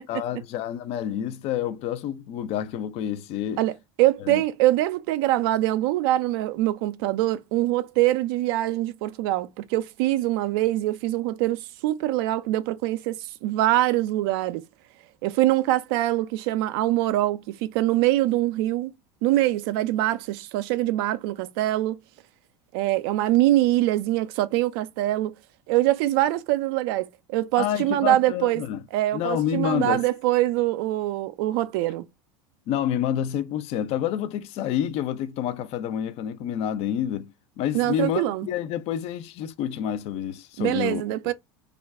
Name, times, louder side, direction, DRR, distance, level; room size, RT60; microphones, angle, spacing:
voice 1, 0.1-3.6 4.2-4.4 27.6-28.8 29.1-30.1 32.7-37.3 37.6-41.3, left 10 dB, 50° left, 0.5 m, -28 dB
voice 2, 3.6-14.6 15.2-18.9 19.2-22.0 22.7-25.4 25.7-28.6 28.9-32.1 37.7-38.5 40.6-41.3, right 15 dB, 65° right, 0.4 m, -24 dB
2.4 x 2.2 x 3.4 m
hypercardioid pair, 90°, 13 cm